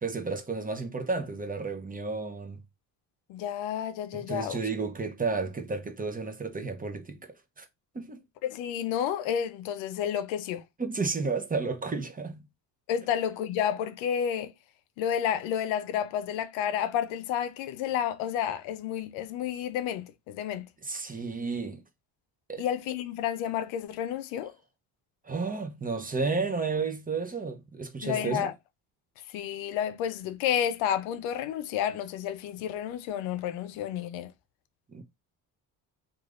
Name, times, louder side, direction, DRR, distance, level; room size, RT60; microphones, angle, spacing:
voice 1, 0.0-2.6 4.1-7.2 7.6-7.7 7.9-8.2 10.8-12.5 20.8-21.8 22.5-22.6 25.2-28.5 34.9-35.0, right 4 dB, 20° right, 0.7 m, -32 dB
voice 2, 3.3-4.6 8.4-10.6 12.9-14.5 15.0-20.7 22.6-24.5 28.0-28.5 29.3-34.3, left 9 dB, 75° left, 0.6 m, -30 dB
3.1 x 2.5 x 2.5 m
supercardioid pair, 65°, 46 cm